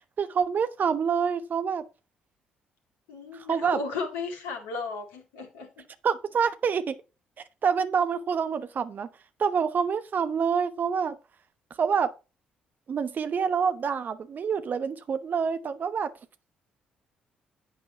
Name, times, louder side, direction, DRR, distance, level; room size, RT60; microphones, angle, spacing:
voice 1, 0.2-1.8 3.5-3.8 6.0-7.0 7.6-9.1 9.4-11.2 11.8-12.1 12.9-16.1, right 6 dB, 45° right, 1.1 m, -26 dB
voice 2, 3.1-5.8, left 4 dB, 70° left, 2.3 m, -35 dB
10.5 x 9.0 x 2.9 m
figure-of-eight pair, 45°, 4 cm